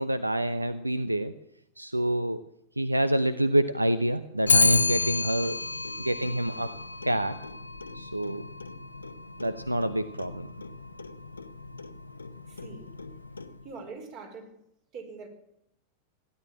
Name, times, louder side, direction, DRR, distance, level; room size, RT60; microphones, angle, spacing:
voice 1, 0.0-1.3 1.8-2.4 2.8-5.6 6.0-6.7 7.0-7.4 7.9-8.5 9.4-10.5, right 1 dB, 85° right, 0.6 m, -27 dB
Clock, 4.5-13.8, left 3 dB, 75° left, 0.8 m, -31 dB
voice 2, 12.5-13.0 13.6-14.6 14.9-15.3, right 4 dB, 40° right, 4.8 m, -43 dB
16.0 x 11.0 x 7.4 m
figure-of-eight pair, 90°, 0 cm